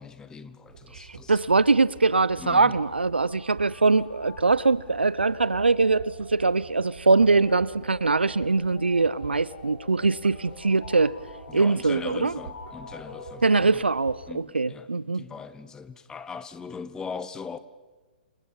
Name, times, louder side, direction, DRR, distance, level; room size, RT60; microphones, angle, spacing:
voice 1, 0.0-1.4 2.4-2.8 11.5-13.8 14.3-14.9 15.1-17.6, left 5 dB, 10° left, 1.3 m, -40 dB
sound 1, 0.6-14.3, right 5 dB, 60° right, 4.5 m, -47 dB
voice 2, 0.9-11.2 11.5-12.3 13.4-15.2, right 3 dB, 85° right, 0.8 m, -22 dB
sound 2, 3.3-14.0, left 4 dB, 60° left, 4.9 m, -46 dB
29.0 x 27.0 x 5.6 m
figure-of-eight pair, 125°, 6 cm